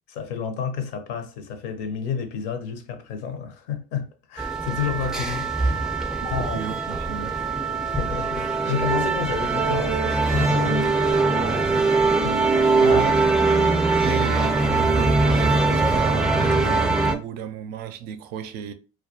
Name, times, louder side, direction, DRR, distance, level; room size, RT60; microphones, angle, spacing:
voice 1, 0.2-6.6 7.8-11.3 12.1-13.1, left 7 dB, 75° left, 0.5 m, -31 dB
sound 1, 4.4-17.1, right 3 dB, 5° right, 0.4 m, -21 dB
voice 2, 6.2-7.4 11.4-11.6 12.8-13.2 14.0-18.7, right 10 dB, 65° right, 0.4 m, -33 dB
2.2 x 2.2 x 2.7 m
supercardioid pair, 75°, 17 cm